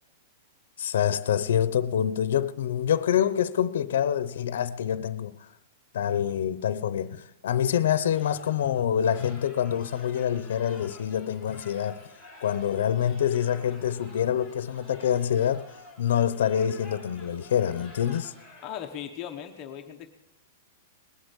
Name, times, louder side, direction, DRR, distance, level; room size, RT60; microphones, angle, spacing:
voice 1, 0.8-5.3 5.9-12.0 12.4-15.7 16.0-18.3, left 9 dB, 70° left, 0.7 m, -26 dB
sound 1, 8.1-18.9, left 2 dB, 10° right, 3.7 m, -51 dB
voice 2, 18.6-20.1, left 10 dB, 20° left, 0.9 m, -38 dB
20.0 x 8.2 x 8.3 m
supercardioid pair, 180°, 0 cm